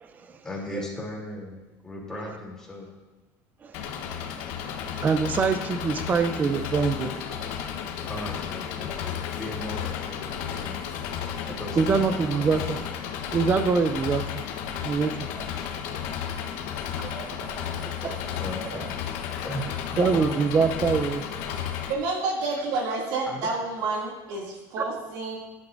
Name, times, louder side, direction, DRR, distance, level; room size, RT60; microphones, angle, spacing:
voice 1, 0.4-1.5 1.8-2.9 8.1-10.8 11.6-12.7 18.4-18.8 19.4-19.7 20.1-20.4 23.3-23.5, left 1 dB, 5° left, -5 dB, 3.1 m, -37 dB
voice 2, 3.6-4.0 5.0-7.5 11.8-12.8 13.3-14.2 14.8-15.5 17.0-18.7 20.0-21.2, right 5 dB, 20° right, 8 dB, 0.5 m, -25 dB
Engine, 3.7-21.9, left 8 dB, 75° left, 1.1 m, -33 dB
voice 3, 21.9-25.4, right 3 dB, 65° right, -3 dB, 2.6 m, -29 dB
17.5 x 10.5 x 2.6 m, 1.1 s
cardioid pair, 175°, 8 cm